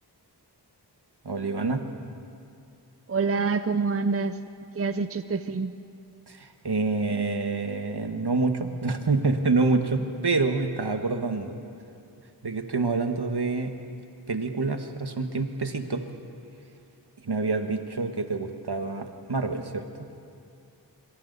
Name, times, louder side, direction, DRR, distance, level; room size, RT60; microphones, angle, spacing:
voice 1, 1.2-1.8 6.3-11.6 12.4-13.7 14.3-16.0 17.2-19.9, right 3 dB, 65° right, 6 dB, 1.5 m, -27 dB
voice 2, 3.1-4.4 4.8-5.7, right 4 dB, 35° right, 11 dB, 0.6 m, -26 dB
25.5 x 25.5 x 4.1 m, 2.5 s
wide cardioid pair, 45°, 42 cm